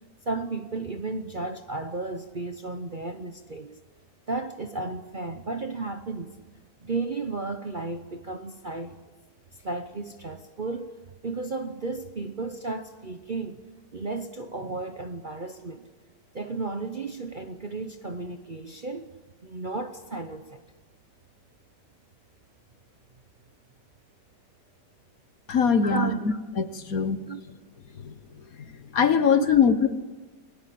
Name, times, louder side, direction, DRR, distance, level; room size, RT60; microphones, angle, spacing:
voice 1, 0.2-3.8 4.3-6.4 6.8-9.0 9.5-10.9 11.2-13.6 13.9-15.9 16.3-19.1 19.4-20.6 25.8-26.4 27.3-27.4 29.4-29.6, right 3 dB, 40° right, 0.8 m, -33 dB
voice 2, 25.5-26.1 26.6-27.2 28.0-28.2 28.6-29.9, left 6 dB, 55° left, 1.5 m, -22 dB
30.0 x 20.5 x 7.7 m
omnidirectional pair, 1.9 m